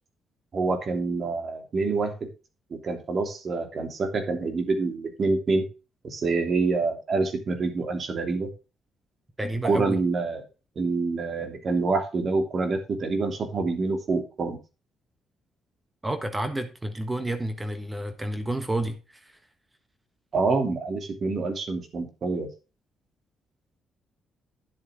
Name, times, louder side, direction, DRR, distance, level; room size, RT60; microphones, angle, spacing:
voice 1, 0.5-2.3 2.7-5.7 6.0-8.5 9.6-10.4 10.7-14.6 20.3-22.5, right 3 dB, 50° right, 5 dB, 3.0 m, -26 dB
voice 2, 9.4-10.0 16.0-19.3, right 1 dB, 15° right, 8 dB, 1.3 m, -30 dB
10.0 x 8.2 x 3.7 m, 0.31 s
cardioid pair, 90°, 0 cm